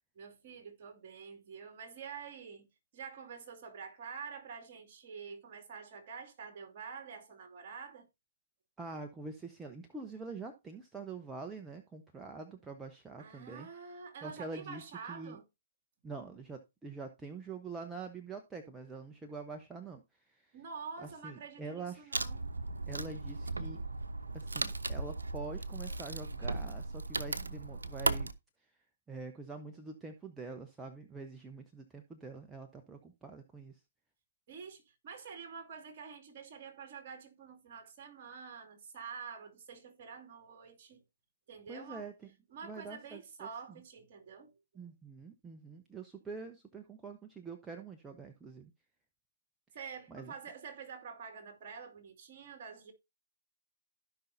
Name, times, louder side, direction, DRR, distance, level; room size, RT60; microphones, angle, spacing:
voice 1, 0.2-2.7 2.9-8.1 13.2-15.4 20.5-22.4 34.5-41.0 41.5-42.1 42.5-44.5 49.7-52.9, right 6 dB, 40° right, 2.5 m, -47 dB
voice 2, 8.8-13.7 14.2-14.8 15.1-15.4 16.0-20.0 20.3-20.5 21.0-22.3 22.9-23.8 24.3-28.3 29.1-33.8 41.7-42.1 42.6-43.8 44.7-48.7 50.1-50.3, right 4 dB, 10° right, 0.9 m, -45 dB
Wood, 22.1-28.3, right 3 dB, 80° right, 0.8 m, -36 dB
15.5 x 5.6 x 2.7 m
figure-of-eight pair, 125°, 0 cm